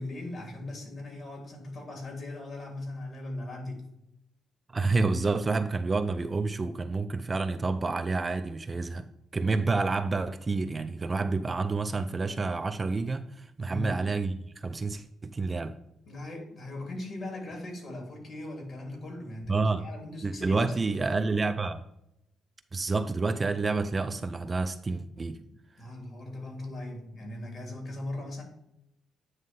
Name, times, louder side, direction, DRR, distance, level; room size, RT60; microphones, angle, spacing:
voice 1, 0.0-3.9 13.6-14.1 16.1-20.9 25.4-25.5 25.8-28.4, left 1 dB, 50° left, 1 dB, 3.0 m, -39 dB
voice 2, 4.7-9.1 9.3-15.8 19.5-19.9 20.2-21.8 22.7-25.4, right 3 dB, 30° right, 8 dB, 0.5 m, -29 dB
9.2 x 3.2 x 5.4 m, 0.81 s
cardioid pair, 90°, 0 cm